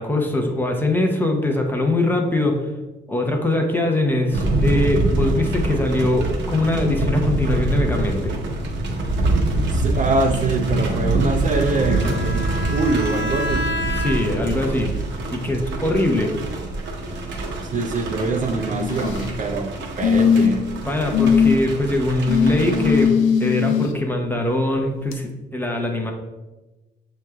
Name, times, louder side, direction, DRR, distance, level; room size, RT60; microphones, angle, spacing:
voice 1, 0.0-2.7 3.1-8.4 14.0-15.0 15.3-16.3 20.9-26.1, left 1 dB, 10° left, 2 dB, 0.6 m, -22 dB
sound 1, 4.3-23.1, right 2 dB, 65° right, 0.8 m, -25 dB
voice 2, 9.7-13.7 17.7-20.7, right 3 dB, 40° right, 3 dB, 0.5 m, -24 dB
Bowed string instrument, 11.5-14.5, equal, 70° left, 0.9 m, -29 dB
sound 2, 18.7-19.3 20.0-20.7 21.1-21.6 22.3-23.9 25.1-25.2, left 7 dB, 85° left, 0.5 m, -19 dB
6.3 x 3.2 x 2.3 m, 1.1 s
cardioid pair, 90°, 20 cm